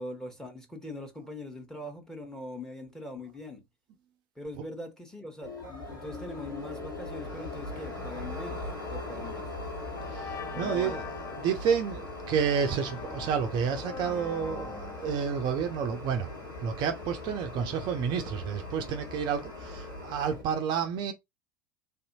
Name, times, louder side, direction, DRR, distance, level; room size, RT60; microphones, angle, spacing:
voice 1, 0.0-3.6 4.4-9.5 10.5-11.0, left 1 dB, 5° left, 1.0 m, -42 dB
sound 1, 5.4-20.4, left 2 dB, 75° left, 2.0 m, -40 dB
sound 2, 9.4-9.5 9.9-16.8, left 5 dB, 20° left, 0.4 m, -44 dB
voice 2, 10.1-16.3 16.6-21.1, right 7 dB, 40° right, 0.5 m, -30 dB
3.4 x 2.6 x 2.7 m
figure-of-eight pair, 75°, 11 cm